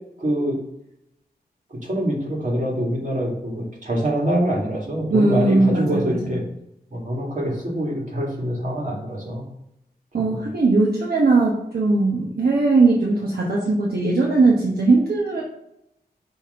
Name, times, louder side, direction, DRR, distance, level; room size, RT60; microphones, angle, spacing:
voice 1, 0.2-0.6 1.7-6.4 6.9-9.5, right 1 dB, 50° right, -3 dB, 2.3 m, -25 dB
voice 2, 5.1-6.4 10.1-15.4, right 3 dB, 70° right, -3 dB, 1.0 m, -19 dB
5.8 x 3.5 x 5.5 m, 0.82 s
wide cardioid pair, 85°, 17 cm